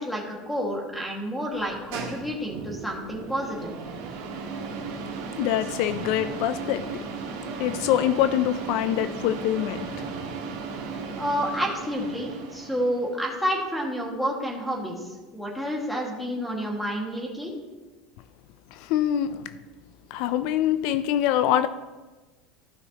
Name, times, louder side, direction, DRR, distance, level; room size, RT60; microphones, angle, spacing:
voice 1, 0.0-3.7 11.2-17.5, equal, 5° left, 1.8 m, -29 dB
sound 1, 1.5-13.1, right 4 dB, 90° right, 1.6 m, -36 dB
voice 2, 5.4-6.9 7.6-10.1 18.7-19.6 20.1-21.7, left 11 dB, 65° left, 0.4 m, -24 dB
14.5 x 5.7 x 2.9 m
supercardioid pair, 130°, 0 cm